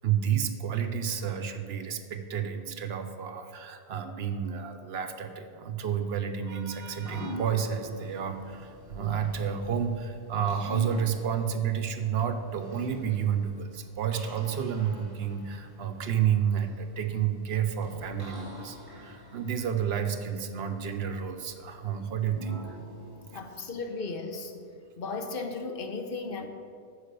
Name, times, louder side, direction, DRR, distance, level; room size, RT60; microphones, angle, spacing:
voice 1, 0.0-22.8 23.3-23.4, right 8 dB, 70° right, 8 dB, 0.9 m, -30 dB
sound 1, 6.8-24.6, left 1 dB, 20° right, 1.9 m, -46 dB
voice 2, 23.3-24.5 25.0-26.5, left 3 dB, 60° left, 5 dB, 1.0 m, -35 dB
9.8 x 5.0 x 6.7 m, 2.2 s
omnidirectional pair, 1.1 m